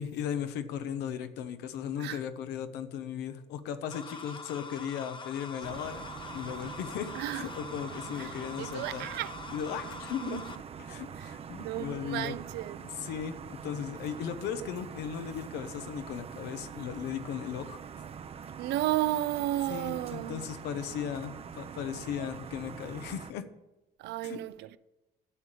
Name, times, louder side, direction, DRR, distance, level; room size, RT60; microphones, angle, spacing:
voice 1, 0.0-6.1 6.3-9.1 9.5-10.4 10.8-12.4 12.8-17.8 19.7-23.4 24.2-24.4, left 8 dB, 90° left, 1.1 m, -37 dB
sound 1, 3.9-10.6, left 4 dB, 30° left, 1.0 m, -44 dB
sound 2, 5.6-23.3, right 7 dB, 35° right, 0.7 m, -44 dB
voice 2, 7.1-7.5 8.2-9.4 10.2-10.5 11.2-12.8 18.6-20.4 24.0-24.8, right 15 dB, 85° right, 0.6 m, -33 dB
11.5 x 6.8 x 9.0 m
cardioid pair, 110°, 17 cm